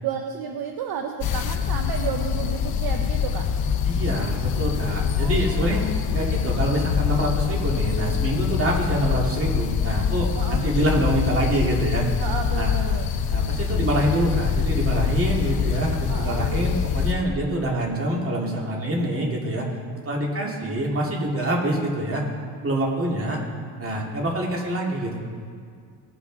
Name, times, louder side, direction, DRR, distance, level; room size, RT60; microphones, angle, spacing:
voice 1, 0.0-3.5 5.2-5.9 10.4-10.6 12.2-13.1 16.1-16.5 20.4-20.8, right 7 dB, 55° right, 4 dB, 0.9 m, -32 dB
sound 1, 1.2-17.1, left 7 dB, 55° left, 0.9 m, -24 dB
voice 2, 3.8-5.8 6.1-12.2 12.5-12.7 13.3-19.7 20.0-22.2 22.6-23.4 23.8-25.2, right 1 dB, 30° right, -2 dB, 2.3 m, -25 dB
18.0 x 6.2 x 4.0 m, 2.2 s
cardioid pair, 105°, 45 cm